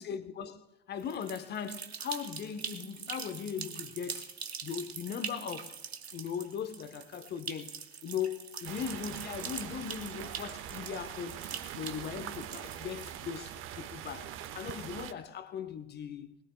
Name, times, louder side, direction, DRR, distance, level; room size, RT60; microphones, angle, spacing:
voice 1, 0.0-4.3 4.6-5.8 6.1-11.4 11.7-16.4, left 7 dB, 35° left, 0.9 m, -39 dB
sound 1, 1.0-13.5, right 6 dB, 85° right, 0.8 m, -43 dB
sound 2, 8.6-15.1, right 11 dB, 40° right, 0.8 m, -43 dB
21.0 x 20.0 x 2.2 m
figure-of-eight pair, 65°, 31 cm